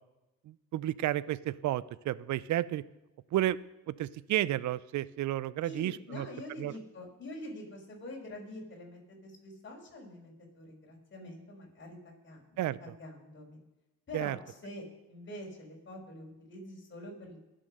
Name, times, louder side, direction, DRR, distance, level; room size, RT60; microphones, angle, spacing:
voice 1, 0.5-2.8 3.3-3.6 3.9-6.3 6.6-6.8 12.6-12.8 14.1-14.4, right 14 dB, 70° right, 19 dB, 0.6 m, -32 dB
voice 2, 5.6-13.6 14.1-14.8 15.1-17.5, left 1 dB, 40° left, -1 dB, 5.6 m, -46 dB
22.5 x 7.8 x 6.6 m, 1.0 s
cardioid pair, 90°, 30 cm